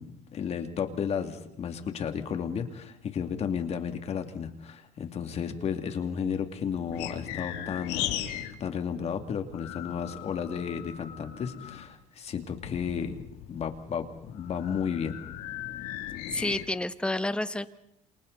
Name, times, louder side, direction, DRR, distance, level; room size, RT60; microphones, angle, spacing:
voice 1, 0.0-13.2 13.5-15.2, left 7 dB, 40° left, 6 dB, 2.5 m, -33 dB
sound 1, 6.2-8.6 8.8-11.9 12.4-16.7, left 12 dB, 80° left, 2.8 m, -38 dB
voice 2, 16.3-17.7, left 1 dB, 5° left, 12 dB, 1.2 m, -29 dB
28.5 x 27.5 x 4.1 m, 0.80 s
cardioid pair, 110°, 16 cm